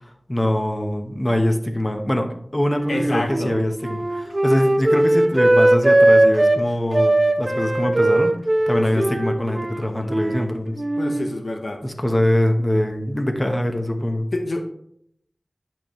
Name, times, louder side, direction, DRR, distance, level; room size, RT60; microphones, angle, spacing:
voice 1, 0.3-8.3 8.7-10.8 11.8-14.3, left 1 dB, 25° left, 5 dB, 1.0 m, -23 dB
Wind instrument woodwind instrument, 2.7-6.6 6.9-10.5 10.8-11.3, right 1 dB, 45° right, 0.7 m, -19 dB
voice 2, 2.9-3.6 8.9-9.1 11.0-11.8 14.3-14.6, left 2 dB, 85° left, 4 dB, 0.8 m, -27 dB
8.5 x 6.0 x 3.1 m, 0.71 s
wide cardioid pair, 55°, 0 cm